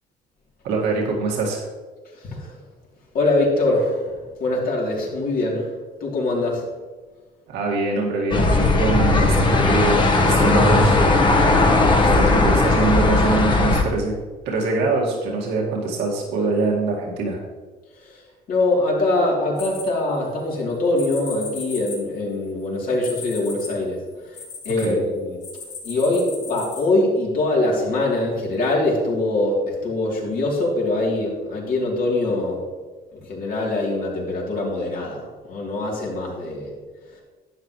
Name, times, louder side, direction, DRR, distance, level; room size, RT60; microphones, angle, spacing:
voice 1, 0.6-1.6 7.5-11.1 12.1-14.1 14.5-17.4 24.8-25.0, right 3 dB, 85° right, -2 dB, 2.1 m, -23 dB
voice 2, 2.1-2.5 3.1-4.1 4.4-5.7 6.0-6.7 18.0-18.2 18.5-24.4 24.6-25.4 25.8-32.6 33.1-36.7, left 2 dB, 60° left, -3 dB, 3.2 m, -23 dB
sound 1, 8.3-13.8, left 2 dB, 30° left, 1.3 m, -17 dB
sound 2, 19.6-20.4 21.0-24.9 25.4-26.8, left 5 dB, 90° left, 3.2 m, -36 dB
11.5 x 8.6 x 3.2 m, 1.4 s
cardioid pair, 110°, 17 cm